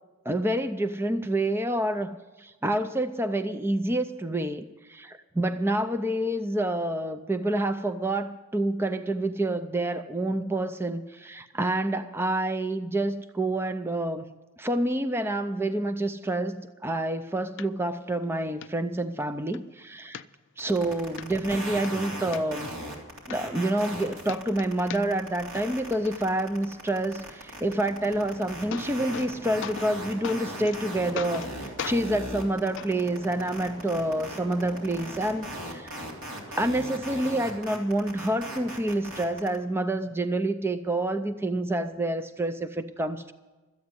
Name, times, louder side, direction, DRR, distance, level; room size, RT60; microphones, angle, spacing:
voice 1, 0.3-4.6 4.9-14.2 14.6-20.2 20.6-22.7 23.3-36.1 36.6-43.3, right 1 dB, 10° right, 10 dB, 0.4 m, -28 dB
sound 1, 17.6-17.7 18.1-18.2 18.6-18.7 19.2-19.6 20.1-20.7 21.2-21.3 21.7-22.4 23.0-23.1 23.3-24.0 24.2-25.3 25.5-26.1 28.1-28.2 28.5-29.3 29.6-29.9 30.2-30.8 31.1-31.5 31.8-32.0 32.8-32.9 33.8-33.9, left 7 dB, 55° left, 0.4 m, -38 dB
sound 2, 20.6-39.5, right 1 dB, 65° right, 3.3 m, -38 dB
sound 3, 27.8-35.6, equal, 35° right, 2.2 m, -45 dB
13.5 x 8.4 x 9.6 m, 1.2 s
head